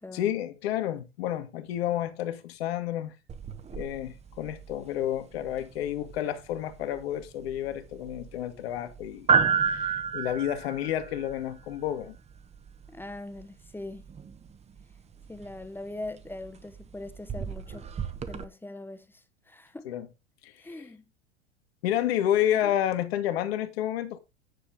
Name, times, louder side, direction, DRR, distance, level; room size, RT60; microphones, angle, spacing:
voice 1, 0.1-3.1 3.7-9.3 9.6-12.2 19.8-20.1 20.4-20.8 21.8-24.2, left 11 dB, 60° left, 1.9 m, -30 dB
sound 1, 3.3-18.4, right 6 dB, 20° right, 1.1 m, -33 dB
voice 2, 12.9-14.1 15.3-17.9 18.3-19.9 20.6-21.0 22.5-22.7, left 2 dB, 5° left, 1.1 m, -41 dB
10.0 x 6.8 x 3.7 m
figure-of-eight pair, 85°, 35 cm